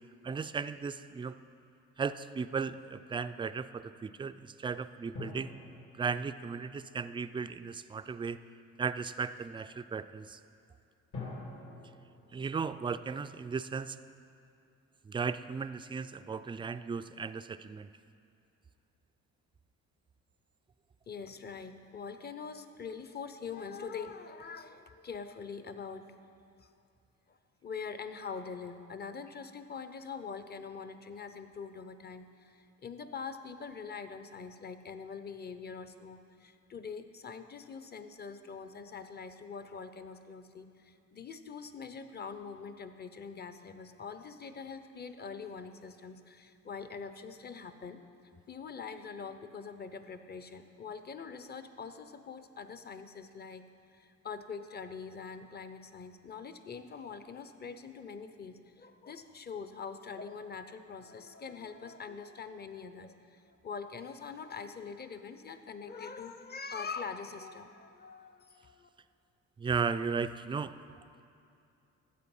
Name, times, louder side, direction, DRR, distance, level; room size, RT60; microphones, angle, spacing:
voice 1, 0.2-1.3 2.0-5.5 6.0-8.4 8.8-10.4 12.3-14.0 15.1-17.9 69.6-70.7, right 5 dB, 15° right, 12 dB, 0.3 m, -36 dB
sound 1, 5.1-7.8 11.1-13.7 14.0-14.1, left 3 dB, 70° left, 2.9 m, -48 dB
voice 2, 21.1-26.1 26.6-26.7 27.3-48.0 48.5-68.9, left 5 dB, 35° left, 10 dB, 0.7 m, -44 dB
13.0 x 7.9 x 5.5 m, 2.6 s
cardioid pair, 90°, 30 cm